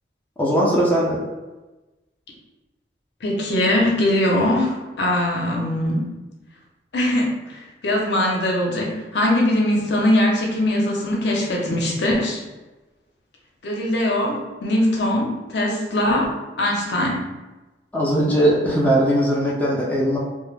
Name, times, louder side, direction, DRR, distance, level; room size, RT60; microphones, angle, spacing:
voice 1, 0.4-1.2 11.8-11.9 17.9-20.2, right 1 dB, 10° left, -5 dB, 0.4 m, -19 dB
voice 2, 3.2-6.1 6.9-12.4 13.6-16.3 16.6-17.3, left 1 dB, 70° left, -1 dB, 0.6 m, -21 dB
2.1 x 2.1 x 3.1 m, 1.1 s
head